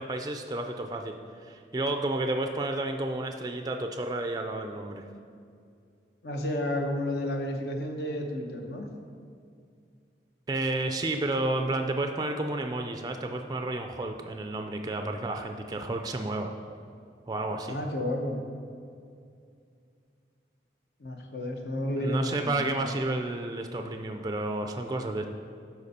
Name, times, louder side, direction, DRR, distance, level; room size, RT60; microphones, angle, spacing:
voice 1, 0.0-5.0 10.5-16.5 17.3-17.8 22.0-25.3, right 2 dB, 20° right, 5 dB, 0.4 m, -31 dB
voice 2, 6.2-8.9 17.7-18.4 21.0-22.8, left 1 dB, 65° left, 3 dB, 0.9 m, -31 dB
11.5 x 4.6 x 4.2 m, 2.3 s
head